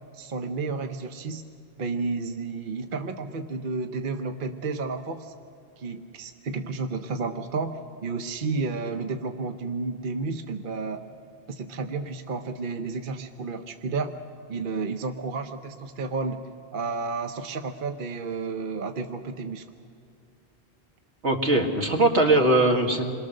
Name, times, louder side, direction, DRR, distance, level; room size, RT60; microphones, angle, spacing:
voice 1, 0.1-1.4 1.8-5.3 5.8-11.0 11.5-14.1 14.5-16.4 16.7-19.6, right 4 dB, 50° right, 6 dB, 1.0 m, -31 dB
voice 2, 21.2-23.0, right 2 dB, 75° right, 2 dB, 2.3 m, -20 dB
27.5 x 22.5 x 6.5 m, 2.3 s
omnidirectional pair, 1.2 m